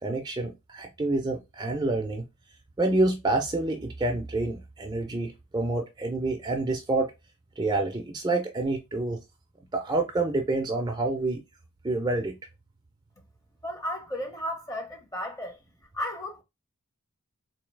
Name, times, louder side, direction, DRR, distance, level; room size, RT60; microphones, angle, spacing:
voice 1, 0.0-2.2 2.8-7.1 7.6-9.2 9.7-11.4 11.8-12.4, right 2 dB, 20° right, 0.5 m, -28 dB
voice 2, 13.6-15.6 15.9-16.4, equal, 15° left, 0.7 m, -34 dB
3.9 x 2.8 x 3.2 m
head